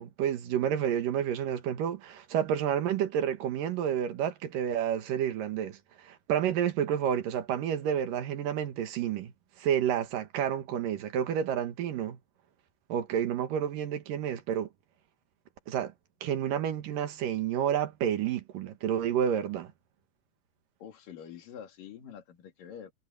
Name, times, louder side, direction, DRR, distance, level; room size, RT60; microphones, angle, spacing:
voice 1, 0.0-9.3 9.6-12.2 12.9-14.7 15.7-15.9 16.2-19.7, right 9 dB, 80° right, 3.2 m, -30 dB
voice 2, 20.8-22.9, left 8 dB, 85° left, 4.1 m, -46 dB
omnidirectional pair, 3.8 m